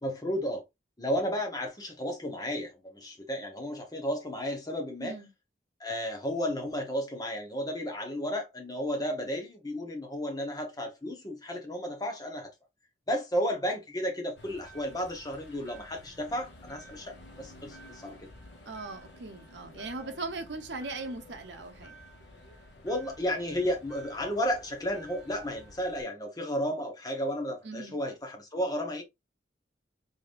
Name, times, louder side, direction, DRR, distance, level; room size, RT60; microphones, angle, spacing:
voice 1, 0.0-0.6 1.0-5.2 5.8-12.5 13.1-18.3 22.8-29.0, equal, 20° left, 1.1 m, -33 dB
voice 2, 5.0-5.3 18.7-21.9 27.6-28.0, right 3 dB, 70° right, 0.9 m, -39 dB
sound 1, 14.4-26.0, equal, 65° left, 1.3 m, -51 dB
4.0 x 3.5 x 2.5 m
head